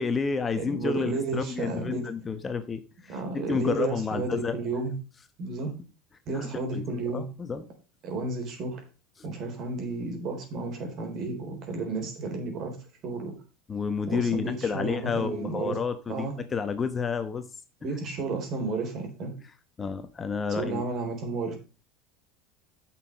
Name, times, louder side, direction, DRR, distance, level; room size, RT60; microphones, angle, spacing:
voice 1, 0.0-4.5 6.3-7.6 9.2-9.3 13.7-17.4 19.8-20.8, left 5 dB, 25° left, 9 dB, 1.1 m, -30 dB
voice 2, 0.6-2.1 3.1-5.0 5.4-5.7 6.3-7.2 8.0-8.8 9.2-12.8 13.0-13.3 14.1-15.8 16.1-16.3 17.8-19.3 20.6-21.5, right 3 dB, 50° right, 3 dB, 4.1 m, -32 dB
8.3 x 6.1 x 5.3 m, 0.35 s
hypercardioid pair, 95°, 0 cm